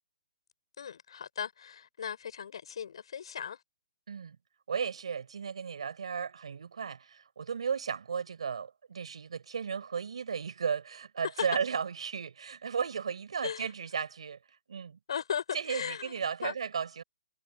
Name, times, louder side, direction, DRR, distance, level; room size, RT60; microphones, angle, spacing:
voice 1, 0.8-3.6 11.3-11.5 13.4-13.7 15.1-16.1 16.4-16.6, left 7 dB, 60° left, 5.5 m, -37 dB
voice 2, 4.7-14.4 14.7-15.0 15.5-17.0, right 6 dB, 70° right, 5.1 m, -35 dB
hypercardioid pair, 170°, 3 cm